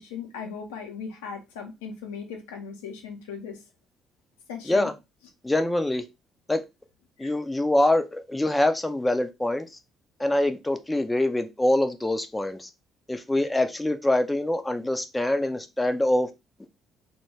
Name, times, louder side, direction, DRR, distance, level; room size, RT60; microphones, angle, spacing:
voice 1, 0.0-3.6 4.5-4.9 7.2-7.3, left 6 dB, 70° left, 0.5 m, -38 dB
voice 2, 5.4-6.0 6.5-6.6 7.2-9.8 10.2-12.7 13.1-16.3, left 1 dB, 10° left, 0.4 m, -24 dB
2.1 x 2.1 x 3.1 m
figure-of-eight pair, 45°, 0 cm